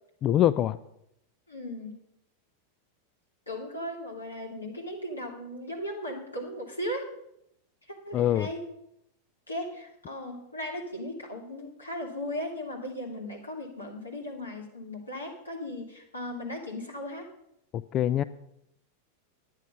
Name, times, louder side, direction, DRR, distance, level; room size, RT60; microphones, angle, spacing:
voice 1, 0.2-0.8 8.1-8.5 17.7-18.2, left 12 dB, 30° left, 14 dB, 0.3 m, -24 dB
voice 2, 1.5-2.0 3.5-7.1 7.9-8.6 9.5-17.3, left 1 dB, 80° left, 0 dB, 2.7 m, -37 dB
10.5 x 9.3 x 5.5 m, 0.78 s
figure-of-eight pair, 90°, 0 cm